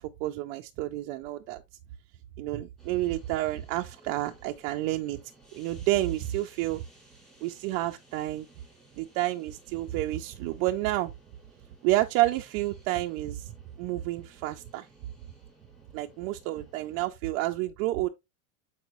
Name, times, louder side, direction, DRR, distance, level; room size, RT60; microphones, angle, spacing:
voice 1, 0.0-1.6 2.4-5.2 5.5-6.8 7.4-8.5 9.0-11.1 11.8-13.5 13.8-14.9 15.9-18.1, right 16 dB, 35° right, 0.4 m, -29 dB
sound 1, 2.8-17.1, right 2 dB, ahead, 2.7 m, -58 dB
8.0 x 4.8 x 3.0 m
supercardioid pair, 160°, 40 cm